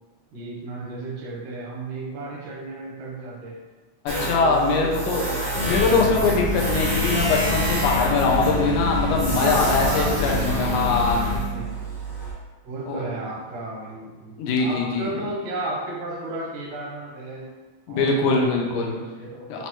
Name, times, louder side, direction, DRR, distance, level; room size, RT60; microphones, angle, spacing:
voice 1, 0.3-3.6 4.2-5.7 6.2-7.1 9.4-11.9 12.6-17.5 17.9-19.6, right 2 dB, 85° right, -3 dB, 2.4 m, -34 dB
voice 2, 4.1-5.3 5.7-11.2 12.9-13.0 14.4-15.1 17.9-18.9 19.5-19.7, left 3 dB, 90° left, -1 dB, 2.1 m, -22 dB
Tools, 4.1-12.3, right 2 dB, 55° right, 0.5 m, -29 dB
sound 1, 5.6-11.4, left 4 dB, 70° left, 1.7 m, -27 dB
6.2 x 2.1 x 2.9 m, 1.3 s
omnidirectional pair, 3.6 m